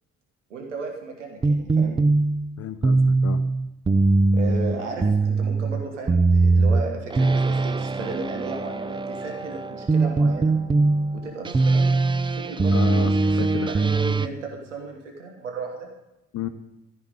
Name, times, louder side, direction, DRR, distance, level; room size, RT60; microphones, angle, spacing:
voice 1, 0.5-2.0 4.3-10.5 11.1-13.3 13.6-15.9, right 3 dB, 80° right, 2 dB, 1.5 m, -35 dB
sound 1, 1.4-14.3, right 3 dB, 15° right, 0.5 m, -21 dB
voice 2, 2.6-3.4 12.7-13.7 16.3-16.5, left 10 dB, 45° left, 10 dB, 0.8 m, -32 dB
14.0 x 6.0 x 8.8 m, 0.90 s
figure-of-eight pair, 45°, 36 cm